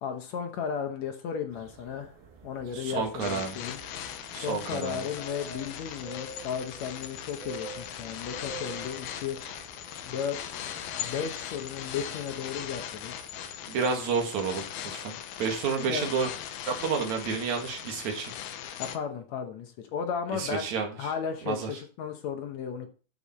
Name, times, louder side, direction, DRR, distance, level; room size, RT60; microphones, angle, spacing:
voice 1, 0.0-2.1 2.4-3.8 4.4-9.4 10.1-10.6 10.9-13.1 15.8-16.1 18.8-20.7 21.0-22.9, left 7 dB, 70° left, 5 dB, 1.8 m, -34 dB
sound 1, 1.5-13.6, right 4 dB, 80° right, 3.9 m, -48 dB
voice 2, 2.7-3.6 4.3-5.0 13.7-14.6 14.9-16.3 16.7-18.3 20.3-20.9 21.4-21.7, right 5 dB, 55° right, 2 dB, 2.9 m, -30 dB
sound 2, 3.2-19.0, left 10 dB, 90° left, 2.8 m, -39 dB
12.5 x 5.6 x 4.3 m, 0.37 s
omnidirectional pair, 4.3 m